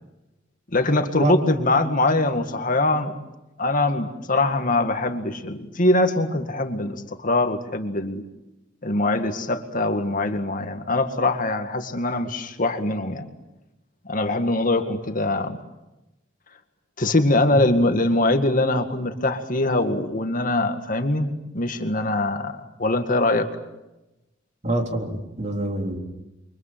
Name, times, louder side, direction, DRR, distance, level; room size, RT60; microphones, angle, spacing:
voice 1, 0.7-3.1 3.6-8.2 8.8-13.2 14.1-15.6 17.0-23.5, left 2 dB, 45° left, 6 dB, 2.1 m, -23 dB
voice 2, 24.6-26.0, right 2 dB, 40° right, 3 dB, 3.8 m, -26 dB
29.0 x 24.0 x 7.7 m, 0.97 s
head